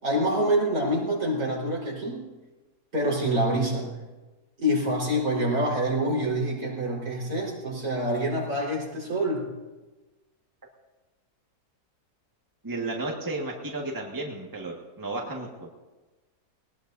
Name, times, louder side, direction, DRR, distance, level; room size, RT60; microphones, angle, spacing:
voice 1, 0.0-2.2 2.9-4.0 4.6-9.5, right 1 dB, 65° right, -6 dB, 5.1 m, -26 dB
voice 2, 12.6-15.7, right 2 dB, 15° right, -1 dB, 1.7 m, -33 dB
21.0 x 19.5 x 2.7 m, 1.2 s
omnidirectional pair, 1.7 m